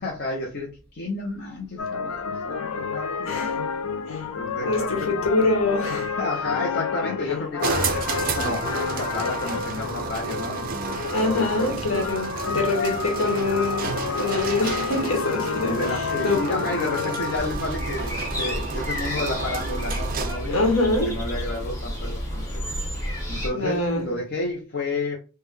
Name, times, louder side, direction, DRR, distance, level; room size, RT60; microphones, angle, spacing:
voice 1, 0.0-3.4 4.2-5.4 5.9-11.7 12.5-12.9 13.8-13.9 15.6-22.6 23.3-25.2, left 2 dB, 45° left, 0.7 m, -31 dB
sound 1, 1.8-17.5, left 6 dB, 90° left, 0.4 m, -30 dB
voice 2, 3.3-3.6 4.1-4.2 4.7-6.0 11.1-13.9 14.2-15.8 16.2-16.7 20.5-21.2 23.5-24.0, left 2 dB, 70° left, 1.2 m, -24 dB
sound 2, 7.6-20.5, right 5 dB, 40° right, 0.4 m, -31 dB
sound 3, 17.3-23.5, equal, 15° left, 1.1 m, -30 dB
3.5 x 2.1 x 3.3 m
head